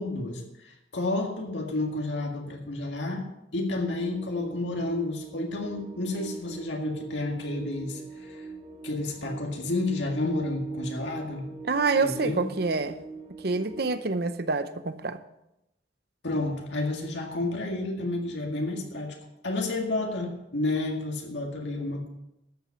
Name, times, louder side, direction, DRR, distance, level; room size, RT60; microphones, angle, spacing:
voice 1, 0.0-3.2 3.5-8.5 8.8-11.5 12.0-12.5 16.2-19.2 19.4-22.1, left 2 dB, 70° left, 1 dB, 1.9 m, -31 dB
sound 1, 4.0-13.9, right 4 dB, 40° right, 2.2 m, -42 dB
voice 2, 11.6-13.0 13.4-15.2, right 3 dB, 55° right, 11 dB, 0.8 m, -27 dB
12.5 x 8.2 x 5.8 m, 0.87 s
head